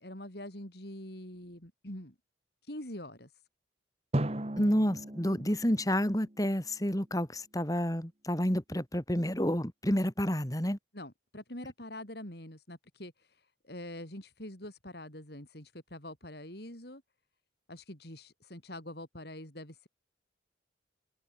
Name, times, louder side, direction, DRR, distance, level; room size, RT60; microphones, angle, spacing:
voice 1, 0.0-2.2 2.6-3.3 10.9-17.0 17.7-19.9, left 1 dB, 55° left, 5.4 m, -45 dB
Drum, 4.1-7.0, right 1 dB, 35° right, 1.3 m, -37 dB
voice 2, 4.6-10.8, equal, 20° left, 2.8 m, -29 dB
head